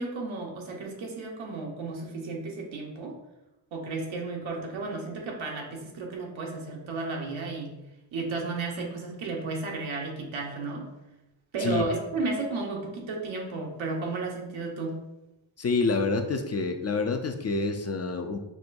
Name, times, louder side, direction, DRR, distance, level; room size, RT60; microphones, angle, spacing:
voice 1, 0.0-3.2 3.7-7.8 8.1-10.9 11.5-15.0, right 3 dB, 75° right, 0 dB, 1.0 m, -33 dB
voice 2, 15.6-18.4, left 3 dB, 35° left, 5 dB, 0.4 m, -27 dB
6.1 x 2.2 x 2.5 m, 0.94 s
supercardioid pair, 55°, 46 cm